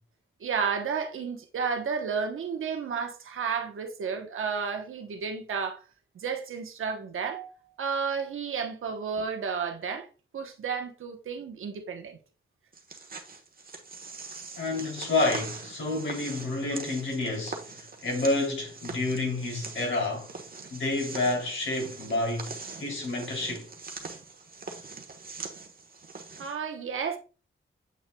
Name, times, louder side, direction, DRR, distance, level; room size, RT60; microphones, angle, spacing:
voice 1, 0.4-5.8 6.1-10.1 10.3-12.2 26.4-27.2, right 6 dB, 90° right, 1.0 m, -32 dB
sound 1, 12.7-26.5, right 4 dB, 45° right, 1.2 m, -42 dB
voice 2, 14.6-20.3 20.7-23.7, left 2 dB, 70° left, 3.0 m, -29 dB
8.2 x 6.0 x 2.2 m
wide cardioid pair, 100°, 20 cm